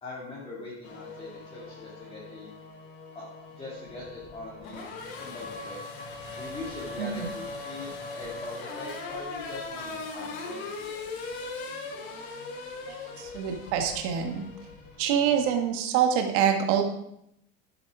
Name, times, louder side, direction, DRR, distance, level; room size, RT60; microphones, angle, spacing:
voice 1, 0.0-2.5 3.1-3.2 3.6-4.9 5.2-5.8 6.4-11.1, left 2 dB, 15° left, -6 dB, 2.7 m, -42 dB
Race car auto racing / Accelerating revving vroom, 0.8-15.6, left 3 dB, 70° left, 4.1 m, -40 dB
voice 2, 7.0-7.3 12.9-14.4 15.0-16.8, right 8 dB, 60° right, 4 dB, 2.1 m, -26 dB
11.5 x 9.5 x 5.0 m, 0.77 s
supercardioid pair, 160°, 40 cm